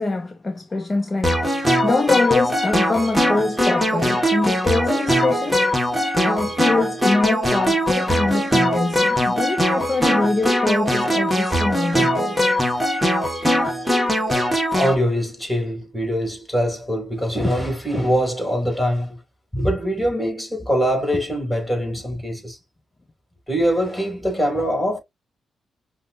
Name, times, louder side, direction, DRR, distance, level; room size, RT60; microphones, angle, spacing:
voice 1, 0.0-5.7 6.2-12.4, left 3 dB, 30° left, 0.5 m, -24 dB
sound 1, 1.2-15.0, equal, 10° right, 1.3 m, -20 dB
voice 2, 14.7-19.2 19.5-22.6 23.5-25.0, equal, 10° left, 2.8 m, -23 dB
5.5 x 2.0 x 2.5 m
cardioid pair, 80°, 0 cm